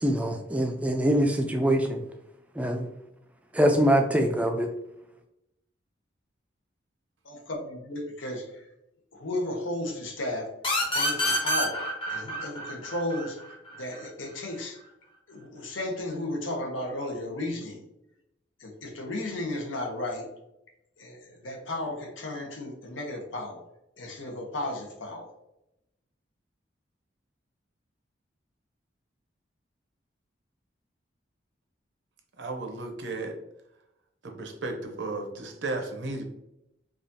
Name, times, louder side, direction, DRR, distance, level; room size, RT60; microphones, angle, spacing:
voice 1, 0.0-2.0 2.6-2.9 3.5-4.7, equal, 5° right, 3 dB, 0.3 m, -24 dB
voice 2, 7.2-8.6 9.1-10.5 10.9-13.4 13.8-14.8 15.3-17.8 18.6-20.3 21.0-23.6 24.0-25.3, left 1 dB, 90° left, 1 dB, 0.9 m, -34 dB
sound 1, 10.6-14.0, equal, 25° left, 0.7 m, -28 dB
voice 3, 32.4-33.4 34.2-36.2, right 2 dB, 75° right, 3 dB, 0.7 m, -34 dB
4.8 x 2.4 x 2.7 m, 0.86 s
head